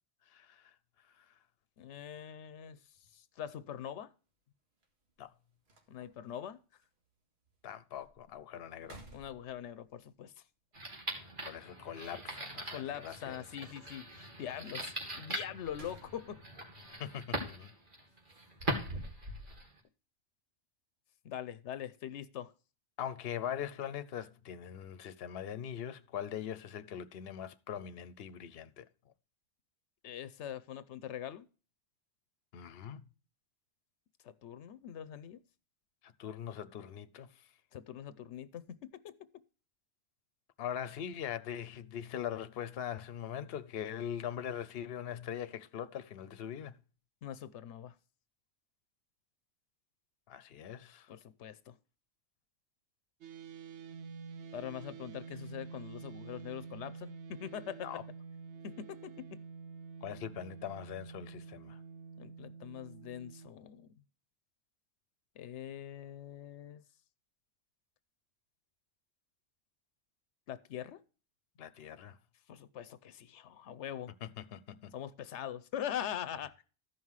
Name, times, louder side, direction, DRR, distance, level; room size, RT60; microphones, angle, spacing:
voice 1, 0.3-0.7 1.2-1.3 5.2-5.3 7.6-9.0 11.5-13.4 17.0-17.7 23.0-28.9 32.5-33.0 36.2-37.3 40.6-46.7 50.3-51.1 57.8-58.0 60.0-61.8 71.6-72.2 74.2-74.9, left 9 dB, 65° left, 0.9 m, -41 dB
voice 2, 1.8-2.8 3.1-4.1 5.9-6.6 9.1-10.3 12.7-16.4 21.2-22.5 30.0-31.5 34.2-35.4 37.7-39.1 47.2-47.9 51.1-51.7 54.5-57.9 58.6-59.4 62.2-64.0 65.4-66.8 70.5-71.0 72.5-74.1 74.9-76.6, left 10 dB, 90° left, 1.0 m, -43 dB
sound 1, 3.0-3.1 4.8-4.9 5.3-5.4 5.7-6.2 6.8-6.9 7.5-7.6 8.0-8.3 8.7-9.8 11.9-12.6 15.3-16.4 16.8-17.0 18.3-19.6, right 1 dB, 65° right, 2.1 m, -50 dB
sound 2, 10.7-19.8, right 1 dB, 50° right, 2.5 m, -42 dB
sound 3, 53.2-63.5, right 5 dB, 80° right, 1.0 m, -48 dB
13.5 x 5.6 x 4.7 m
omnidirectional pair, 1.2 m